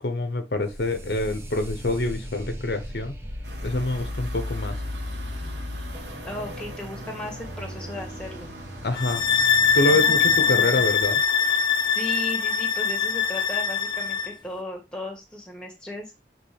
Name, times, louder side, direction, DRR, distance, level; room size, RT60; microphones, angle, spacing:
voice 1, 0.0-3.1 3.6-4.8 8.8-9.2 9.7-11.2, left 2 dB, 70° left, 0.9 m, -26 dB
sound 1, 0.6-11.2, left 1 dB, 15° right, 1.1 m, -37 dB
sound 2, 3.4-9.8, right 2 dB, 90° right, 1.7 m, -42 dB
voice 2, 6.2-8.5 9.8-10.8 11.8-16.1, left 1 dB, 5° left, 1.8 m, -36 dB
sound 3, 9.0-14.3, left 6 dB, 25° left, 0.6 m, -22 dB
7.7 x 3.7 x 3.4 m
head